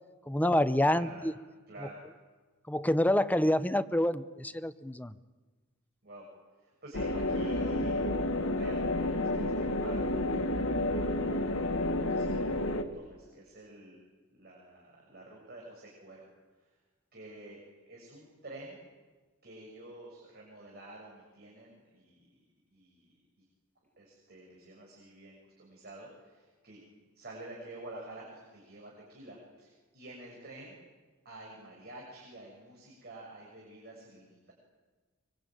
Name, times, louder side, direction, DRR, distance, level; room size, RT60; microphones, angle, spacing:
voice 1, 0.3-1.3 2.7-5.1, left 1 dB, 10° left, 12 dB, 0.8 m, -27 dB
voice 2, 0.9-1.3 1.7-2.0 6.0-6.3 6.6-8.1 8.6-14.0 14.3-16.2 16.6-16.7 17.1-17.6 17.9-18.8 19.4-22.3 22.7-23.4 24.0-30.8 31.3-34.5, right 1 dB, 50° right, -2 dB, 7.0 m, -49 dB
sound 1, 6.9-12.8, left 1 dB, 70° left, 2.0 m, -30 dB
24.0 x 23.5 x 9.2 m, 1.3 s
head